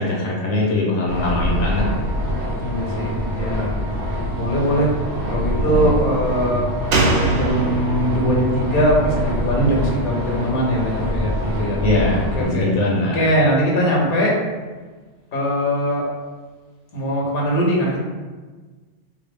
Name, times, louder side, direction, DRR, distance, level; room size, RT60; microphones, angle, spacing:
voice 1, 0.0-1.9 5.6-5.9 11.8-13.3, left 2 dB, 70° left, -4 dB, 0.9 m, -21 dB
sound 1, 1.1-12.4, equal, 85° right, 1.4 m, -25 dB
voice 2, 2.6-3.7 4.3-4.9 5.2-6.7 7.3-11.8 12.3-12.7 13.1-14.3 15.3-16.1 16.9-18.0, equal, 45° left, -3 dB, 0.9 m, -21 dB
Slam, 6.9-10.4 10.7-10.8, right 2 dB, 60° right, 0.7 m, -24 dB
3.8 x 2.0 x 3.4 m, 1.4 s
omnidirectional pair, 1.3 m